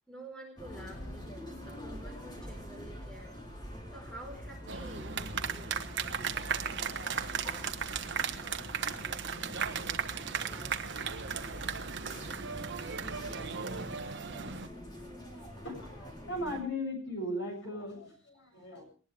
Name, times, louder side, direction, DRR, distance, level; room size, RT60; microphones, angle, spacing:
voice 1, 0.1-1.2 1.6-3.4 3.9-5.9 18.4-18.5, right 1 dB, 5° left, 2 dB, 4.4 m, -49 dB
sound 1, 0.6-16.6, equal, 20° left, 4.0 m, -45 dB
sound 2, 4.7-14.7, right 7 dB, 55° right, 1.3 m, -36 dB
voice 2, 15.2-18.8, left 1 dB, 55° left, 3 dB, 7.7 m, -38 dB
21.0 x 19.5 x 3.4 m, 0.38 s
head